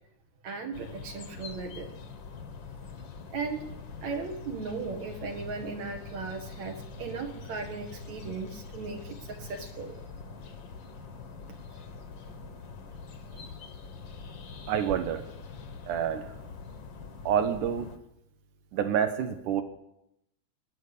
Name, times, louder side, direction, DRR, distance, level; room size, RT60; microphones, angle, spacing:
voice 1, 0.4-1.9 3.3-3.6 4.0-10.0, right 4 dB, 65° right, 3 dB, 2.9 m, -37 dB
sound 1, 0.7-18.0, left 5 dB, 50° left, 1.7 m, -44 dB
voice 2, 14.7-15.2 15.9-16.3 17.3-17.9 18.7-19.6, right 8 dB, 85° right, 7 dB, 2.6 m, -27 dB
18.0 x 6.9 x 10.0 m, 0.81 s
omnidirectional pair, 3.6 m